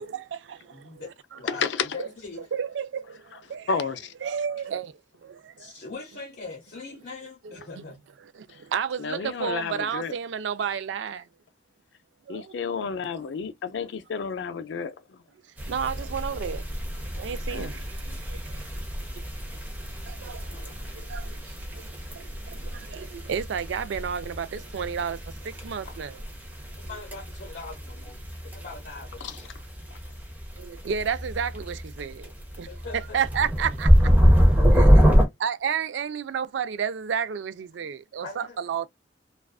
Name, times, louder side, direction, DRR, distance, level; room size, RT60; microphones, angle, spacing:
voice 1, 0.0-1.1 1.3-1.4 2.0-2.1 2.4-3.7 4.2-5.7 7.4-7.8 8.2-11.3 12.3-12.6 15.4-16.6 17.1-19.3 19.8-26.2 26.8-26.9 30.6-34.1 34.7-35.0 35.4-38.9, right 7 dB, 85° right, 0.4 m, -32 dB
voice 2, 0.7-2.5 5.6-8.0 25.8-26.0 26.7-29.3 32.6-33.2 34.8-35.4 38.2-38.6, left 3 dB, 55° left, 0.9 m, -42 dB
voice 3, 1.5-1.9 3.7-4.1 9.0-10.1 12.3-15.2 17.5-17.8 20.5-20.7 29.2-29.4, left 5 dB, 80° left, 0.4 m, -31 dB
sound 1, 15.6-35.3, equal, 10° right, 0.6 m, -25 dB
2.4 x 2.3 x 2.2 m
head